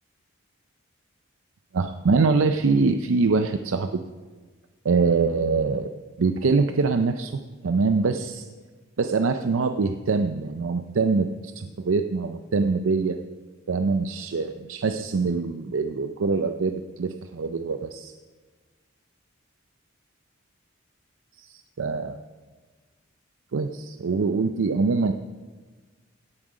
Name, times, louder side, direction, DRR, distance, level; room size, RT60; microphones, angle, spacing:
voice 1, 1.7-4.0 4.8-5.9 6.2-7.3 7.6-8.5 9.0-11.3 11.6-13.2 13.7-18.1 21.4-22.2 23.5-25.1, right 4 dB, 75° right, 7 dB, 0.5 m, -24 dB
17.0 x 7.5 x 5.0 m, 1.4 s
head